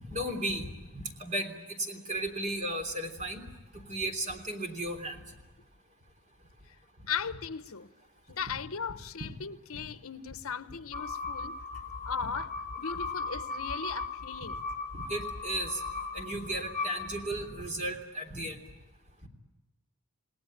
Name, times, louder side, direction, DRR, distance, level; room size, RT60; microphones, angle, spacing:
voice 1, 0.1-3.4 3.7-5.2 9.7-9.9 14.9-15.8 16.1-18.6 19.2-19.3, right 1 dB, 30° right, 3.3 m, -35 dB
voice 2, 7.1-7.9 8.3-11.6 12.0-14.6, left 6 dB, 75° left, 1.0 m, -37 dB
sound 1, 10.9-17.7, left 4 dB, 40° left, 4.6 m, -37 dB
29.0 x 19.0 x 8.8 m
head